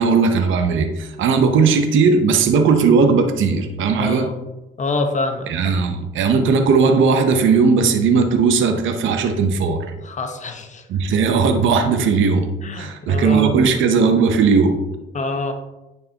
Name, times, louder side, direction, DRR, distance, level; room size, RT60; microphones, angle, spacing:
voice 1, 0.0-4.3 5.5-9.9 10.9-12.5 12.7-14.8, right 5 dB, 80° right, 6 dB, 0.8 m, -17 dB
voice 2, 4.0-4.4 4.8-5.8 10.0-10.8 12.6-13.5 15.1-15.5, left 3 dB, 40° left, 5 dB, 1.0 m, -26 dB
9.6 x 4.6 x 2.9 m, 1.0 s
cardioid pair, 90°, 20 cm